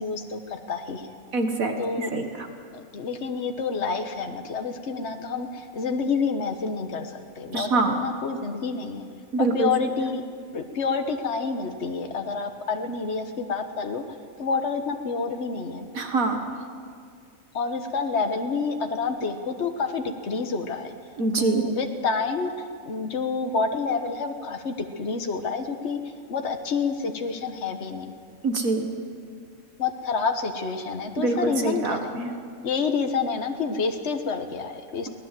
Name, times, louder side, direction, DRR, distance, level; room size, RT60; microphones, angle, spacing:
voice 1, 0.0-1.2 1.8-2.1 2.7-9.0 9.5-10.2 10.5-14.0 14.4-15.9 17.5-20.9 21.4-26.0 26.3-28.1 29.8-32.1 32.6-35.1, left 4 dB, 55° left, 6 dB, 1.6 m, -28 dB
voice 2, 1.3-2.5 7.5-8.0 9.3-9.7 15.9-16.4 21.2-21.7 28.4-28.9 31.2-32.3, right 3 dB, 75° right, 4 dB, 2.1 m, -25 dB
24.0 x 18.0 x 7.6 m, 2.1 s
omnidirectional pair, 1.5 m